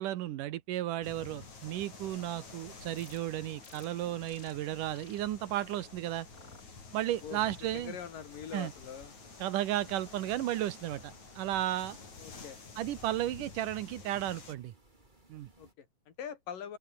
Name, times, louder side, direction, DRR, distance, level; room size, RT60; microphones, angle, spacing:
voice 1, 0.0-6.3 6.9-8.0 8.5-8.7 9.4-12.0 12.8-14.7 15.3-15.5, right 13 dB, 80° right, 2.6 m, -34 dB
sound 1, 1.0-14.5, left 4 dB, 60° left, 7.0 m, -50 dB
sound 2, 3.0-3.2 3.6-3.9 4.3-4.5 4.9-5.2 5.6-5.9 6.3-6.6 7.1-7.5, left 3 dB, 25° left, 4.8 m, -56 dB
voice 2, 7.7-9.1 12.2-12.6 15.6-16.8, left 8 dB, 85° left, 4.3 m, -43 dB
sound 3, 8.1-15.7, right 2 dB, 15° right, 3.9 m, -62 dB
open air
omnidirectional pair, 3.8 m